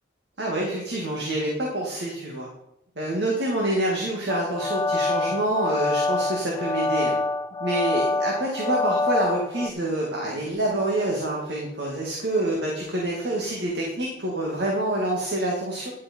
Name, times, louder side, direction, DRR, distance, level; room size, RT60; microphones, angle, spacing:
voice 1, 0.4-2.5 3.0-7.1 7.6-15.9, right 1 dB, 70° right, -2 dB, 2.2 m, -27 dB
sound 1, 4.3-9.7, left 2 dB, 20° left, 0.4 m, -26 dB
11.0 x 8.5 x 4.6 m, 0.84 s
head